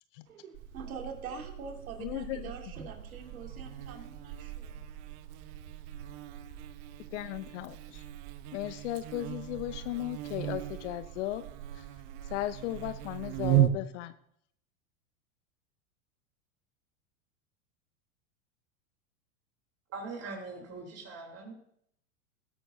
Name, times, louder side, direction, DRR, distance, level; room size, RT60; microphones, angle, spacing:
voice 1, 0.3-4.8, right 5 dB, 80° right, 2 dB, 2.6 m, -44 dB
Buzz, 0.5-13.7, right 14 dB, 55° right, 1.1 m, -36 dB
voice 2, 2.0-2.5 7.1-8.0 8.5-11.4 12.3-14.1, left 14 dB, 60° left, 13 dB, 0.8 m, -36 dB
voice 3, 19.9-21.5, right 3 dB, 35° right, 0 dB, 3.5 m, -41 dB
20.0 x 11.0 x 2.7 m, 0.70 s
hypercardioid pair, 105°, 42 cm